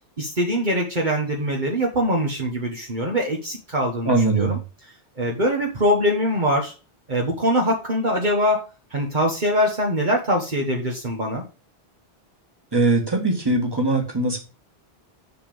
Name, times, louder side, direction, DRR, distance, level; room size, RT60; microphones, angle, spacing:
voice 1, 0.2-4.6 5.2-6.7 7.1-8.6 8.9-11.4, equal, 45° right, 0 dB, 1.5 m, -23 dB
voice 2, 4.1-4.5 12.7-14.4, right 2 dB, 20° right, 3 dB, 2.1 m, -21 dB
6.9 x 6.8 x 5.4 m, 0.33 s
omnidirectional pair, 1.1 m